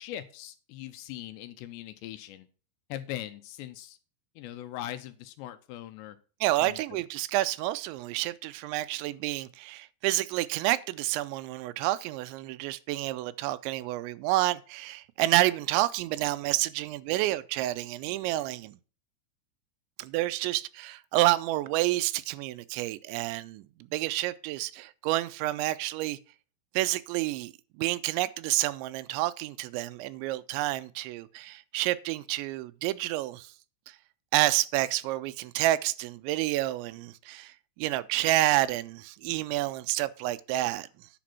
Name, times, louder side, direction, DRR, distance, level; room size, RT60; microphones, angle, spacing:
voice 1, 0.0-2.5 2.9-4.0 4.4-6.2 6.6-6.8, left 13 dB, 80° left, 2.7 m, -40 dB
voice 2, 6.4-18.8 20.0-26.2 26.7-33.5 33.9-34.0 34.3-41.1, right 16 dB, 85° right, 2.8 m, -29 dB
10.0 x 5.2 x 5.9 m
omnidirectional pair, 5.3 m